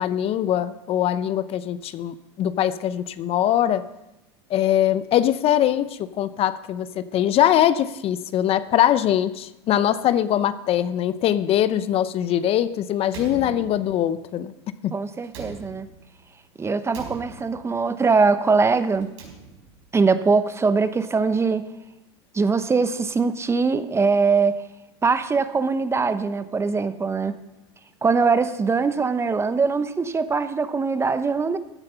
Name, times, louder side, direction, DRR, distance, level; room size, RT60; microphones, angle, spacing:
voice 1, 0.0-3.8 4.5-14.5 14.8-14.9, left 11 dB, 45° left, 14 dB, 0.6 m, -22 dB
Slam, 13.1-14.2 15.2-16.2 16.9-17.8 18.9-19.9, right 5 dB, 75° right, 4.7 m, -41 dB
voice 2, 14.9-15.9 16.6-19.1 19.9-21.7 22.3-24.6 25.0-27.4 28.0-31.6, right 4 dB, 20° right, 12 dB, 0.9 m, -22 dB
15.5 x 9.6 x 5.6 m, 0.93 s
hypercardioid pair, 95°, 14 cm